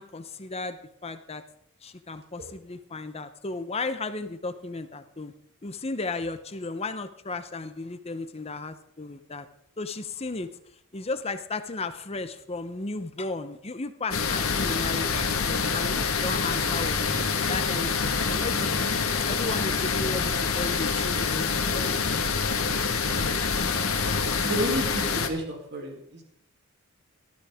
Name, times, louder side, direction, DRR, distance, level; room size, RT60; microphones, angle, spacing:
voice 1, 0.0-1.4 1.8-5.3 5.6-9.5 9.8-10.5 10.9-17.1 17.5-18.8 19.3-22.2 22.5-22.7, left 3 dB, 30° left, 10 dB, 0.7 m, -34 dB
sound 1, 14.1-25.3, left 5 dB, 80° left, 1.6 m, -26 dB
voice 2, 24.2-26.2, right 1 dB, 50° right, 1 dB, 2.8 m, -32 dB
17.5 x 13.0 x 3.6 m, 0.70 s
head